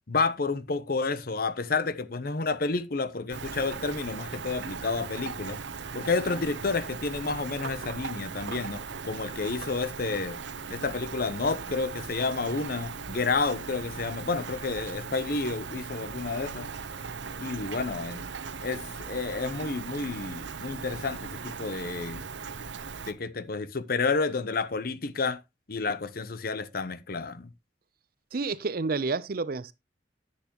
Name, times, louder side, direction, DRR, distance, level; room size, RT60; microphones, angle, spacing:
voice 1, 0.1-5.6 5.9-10.4 10.7-16.7 17.4-18.3 18.6-21.2 21.6-22.2 23.1-25.4 25.7-27.5, left 4 dB, 55° left, 0.7 m, -30 dB
Rain, 3.3-23.1, right 5 dB, 80° right, 0.8 m, -38 dB
voice 2, 28.3-29.7, right 4 dB, 55° right, 0.6 m, -29 dB
10.5 x 8.2 x 3.0 m
head